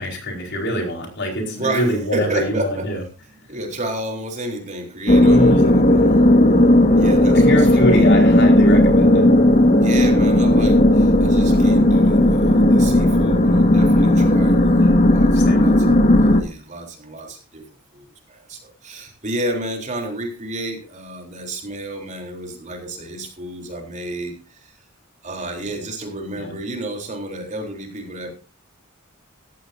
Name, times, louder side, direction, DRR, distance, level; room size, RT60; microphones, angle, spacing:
voice 1, 0.0-3.0 5.3-5.7 7.4-9.3 14.8-15.0 15.4-15.6 26.4-26.5, equal, 55° left, 2 dB, 4.7 m, -24 dB
voice 2, 1.5-2.9 3.5-6.3 7.0-8.1 9.8-17.7 17.9-24.8 25.2-28.3, right 1 dB, 35° right, 3 dB, 3.7 m, -31 dB
sound 1, 5.1-16.4, left 1 dB, 40° left, 1.6 m, -14 dB
16.5 x 14.0 x 2.7 m, 0.32 s
head